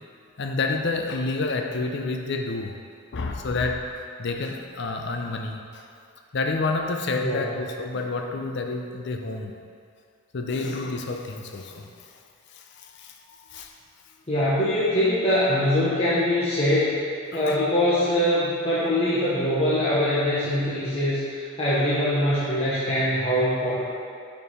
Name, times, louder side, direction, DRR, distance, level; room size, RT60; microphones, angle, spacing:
voice 1, 0.4-2.8 3.1-3.9 4.2-5.8 6.3-9.5 10.3-12.1 12.5-13.7 17.3-17.6, left 3 dB, 55° left, 4 dB, 0.5 m, -29 dB
voice 2, 14.3-17.0 17.3-23.8, left 1 dB, 30° left, -10 dB, 0.9 m, -23 dB
5.4 x 4.6 x 4.9 m, 2.4 s
head